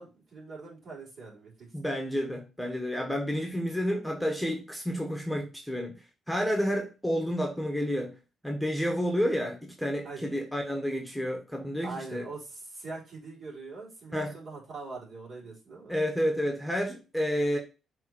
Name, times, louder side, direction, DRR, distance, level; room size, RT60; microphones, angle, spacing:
voice 1, 0.0-1.7 10.0-10.2 11.8-15.9, right 3 dB, 55° right, 3.8 m, -42 dB
voice 2, 1.7-5.9 6.3-8.1 8.4-12.3 14.1-14.3 15.9-17.6, equal, ahead, 1.4 m, -30 dB
5.9 x 3.6 x 4.5 m
cardioid pair, 85°, 0 cm